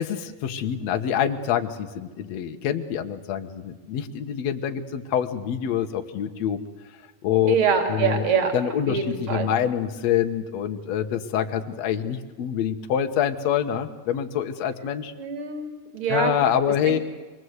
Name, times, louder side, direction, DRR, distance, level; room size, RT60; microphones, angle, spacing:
voice 1, 0.0-6.6 7.2-7.6 7.9-8.3 8.5-15.1 16.1-17.0, left 9 dB, 60° left, 6 dB, 2.2 m, -26 dB
voice 2, 7.5-8.5 8.9-9.5 15.2-16.3, right 6 dB, 40° right, 5 dB, 3.3 m, -24 dB
26.0 x 21.0 x 8.1 m, 1.4 s
omnidirectional pair, 4.0 m